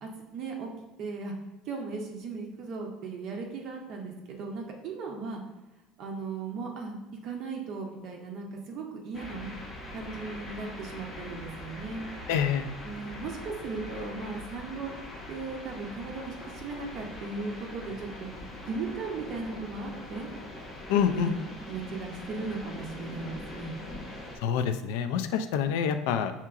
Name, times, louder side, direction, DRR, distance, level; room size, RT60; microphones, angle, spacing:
voice 1, 0.0-0.7 1.0-1.3 1.7-5.4 6.0-9.5 9.9-12.0 12.8-14.9 15.3-18.3 18.7-20.3 21.1-21.3 21.7-23.7, right 4 dB, 40° right, 1 dB, 0.5 m, -37 dB
sound 1, 9.1-24.4, left 1 dB, 20° left, 0.6 m, -42 dB
voice 2, 12.3-12.7 20.9-21.4 24.4-26.3, left 8 dB, 75° left, 8 dB, 0.3 m, -27 dB
5.7 x 2.8 x 2.3 m, 1.1 s
cardioid pair, 175°, 0 cm